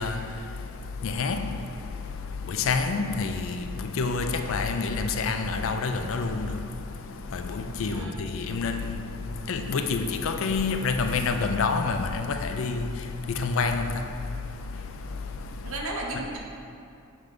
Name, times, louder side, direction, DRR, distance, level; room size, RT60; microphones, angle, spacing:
voice 1, 0.0-15.8 16.1-16.3, left 4 dB, 65° left, 0.4 m, -29 dB
voice 2, 15.6-16.4, right 2 dB, 70° right, 0.8 m, -33 dB
9.1 x 3.6 x 3.8 m
head